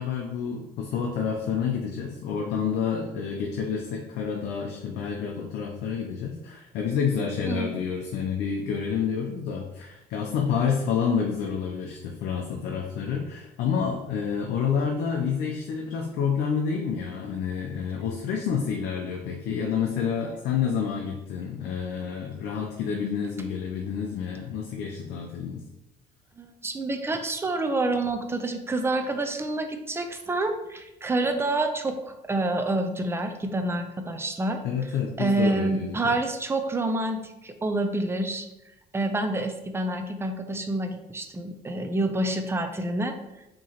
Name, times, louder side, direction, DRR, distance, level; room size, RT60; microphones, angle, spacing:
voice 1, 0.0-25.7 34.6-36.1, left 6 dB, 80° left, 2 dB, 0.5 m, -29 dB
voice 2, 7.5-7.8 26.4-34.6 35.2-38.5 38.9-43.2, right 2 dB, 15° right, 6 dB, 0.4 m, -28 dB
4.6 x 2.9 x 2.9 m, 0.94 s
cardioid pair, 110°, 17 cm